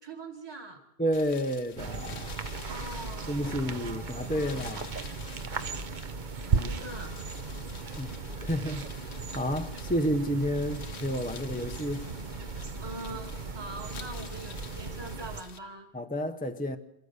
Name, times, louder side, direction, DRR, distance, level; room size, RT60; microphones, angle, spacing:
voice 1, 0.0-0.8 2.7-4.9 6.4-7.2 12.8-15.9, right 2 dB, 20° right, 1.9 m, -43 dB
voice 2, 1.0-2.4 3.3-4.9 6.5-6.7 8.0-12.1 15.9-16.8, equal, 10° left, 0.6 m, -31 dB
sound 1, 1.1-15.6, left 6 dB, 80° left, 1.3 m, -50 dB
sound 2, 1.8-15.4, right 4 dB, 45° right, 1.0 m, -36 dB
27.0 x 13.5 x 8.1 m
omnidirectional pair, 1.1 m